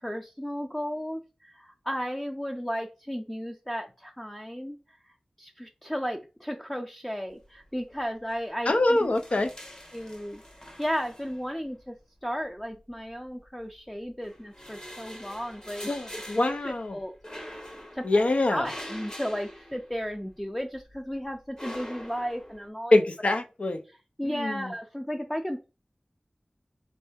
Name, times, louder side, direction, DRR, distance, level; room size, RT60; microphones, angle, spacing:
voice 1, 0.0-4.8 5.0-5.1 5.4-9.5 9.9-12.0 12.2-16.2 16.5-17.6 17.9-18.0 18.5-23.1 24.2-25.6, equal, 10° left, 0.5 m, -34 dB
sound 1, 7.4-7.9 8.2-8.4 8.7-11.8 12.7-13.7 14.1-20.4 20.8-22.7, equal, 30° left, 1.2 m, -44 dB
voice 2, 8.7-9.5 15.9-17.0 18.0-18.7 22.9-23.8 24.2-24.7, left 2 dB, 65° left, 0.6 m, -24 dB
4.3 x 2.6 x 3.5 m
wide cardioid pair, 45°, 2 cm